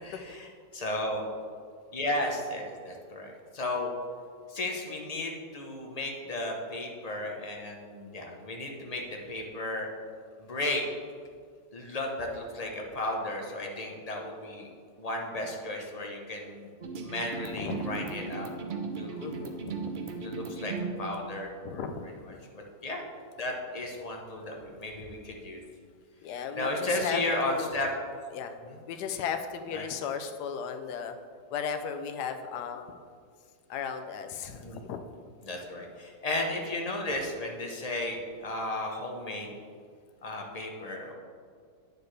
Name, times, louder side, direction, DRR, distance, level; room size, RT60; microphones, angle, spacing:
voice 1, 0.0-1.3 1.9-3.9 4.5-9.9 10.4-10.8 11.7-14.7 15.0-16.7 17.0-18.5 19.0-19.5 20.2-21.9 22.2-23.0 23.4-25.6 26.5-27.9 28.6-28.8 29.7-29.9 34.5-34.8 35.4-39.5 40.2-41.1, left 1 dB, 35° left, 1 dB, 0.7 m, -34 dB
sound 1, 16.8-21.0, right 4 dB, 85° right, 0.4 m, -36 dB
voice 2, 17.6-18.1 19.2-19.9 21.6-22.1 26.2-27.7 28.3-28.5 28.9-31.2 31.5-32.9 33.7-35.1, left 7 dB, 85° left, 7 dB, 1.2 m, -35 dB
9.3 x 6.7 x 3.3 m, 2.1 s
omnidirectional pair, 1.7 m